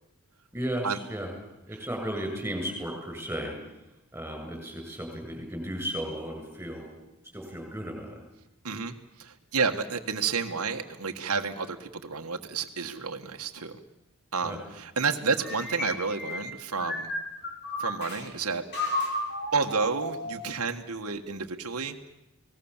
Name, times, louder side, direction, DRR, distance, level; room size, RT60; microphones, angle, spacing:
voice 1, 0.5-1.3 1.7-3.5 4.1-6.9 7.3-8.2 14.4-14.6, equal, 10° right, 3 dB, 7.7 m, -34 dB
voice 2, 8.6-13.8 14.3-17.1 17.8-18.6 19.5-22.0, right 5 dB, 85° right, 4 dB, 1.5 m, -30 dB
sound 1, 15.4-18.2 18.7-20.5, left 1 dB, 50° left, 4.8 m, -33 dB
29.5 x 19.5 x 7.3 m, 0.98 s
head